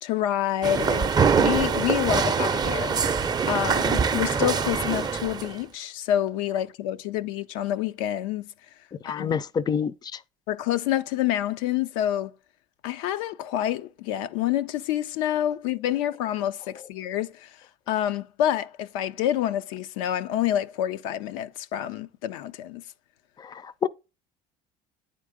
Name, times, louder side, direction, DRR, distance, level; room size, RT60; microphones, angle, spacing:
voice 1, 0.0-3.0 3.5-8.5 9.1-9.4 10.5-12.3 12.8-17.5 17.9-22.8, left 12 dB, 85° left, 0.5 m, -27 dB
sound 1, 0.6-5.6, right 5 dB, 25° right, 0.5 m, -24 dB
voice 2, 9.0-9.9 23.8-23.9, left 7 dB, 25° left, 0.4 m, -25 dB
9.2 x 3.8 x 3.5 m
supercardioid pair, 95°, 16 cm